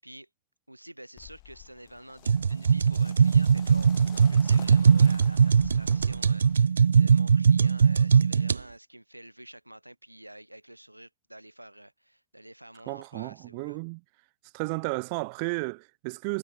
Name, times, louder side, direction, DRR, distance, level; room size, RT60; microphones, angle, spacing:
voice 1, 0.7-13.8, right 1 dB, 85° right, 5.6 m, -48 dB
sound 1, 1.2-6.6, left 31 dB, 45° left, 5.2 m, -50 dB
sound 2, 2.3-8.6, right 6 dB, 70° right, 0.5 m, -21 dB
voice 2, 12.9-14.0 14.5-16.4, right 32 dB, 45° right, 6.0 m, -33 dB
figure-of-eight pair, 90°, 0 cm